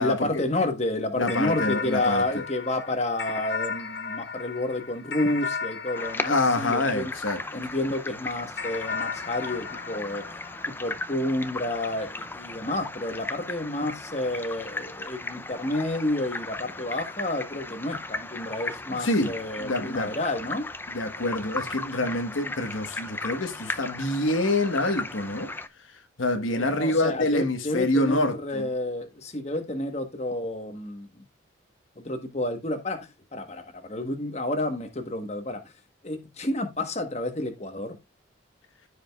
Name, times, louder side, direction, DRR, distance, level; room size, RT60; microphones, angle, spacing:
voice 1, 0.0-7.1 7.5-10.4 10.7-20.7 26.6-31.1 32.0-35.7 36.0-38.0, left 1 dB, 35° left, 1.3 m, -30 dB
voice 2, 1.2-2.4 6.2-7.4 18.9-20.1 20.9-25.5 26.2-28.7, left 2 dB, 85° left, 1.4 m, -26 dB
sound 1, 1.3-7.9 8.6-11.3, left 5 dB, 60° left, 0.9 m, -35 dB
sound 2, 5.9-25.7, left 2 dB, 10° left, 0.4 m, -37 dB
14.5 x 5.1 x 2.4 m
head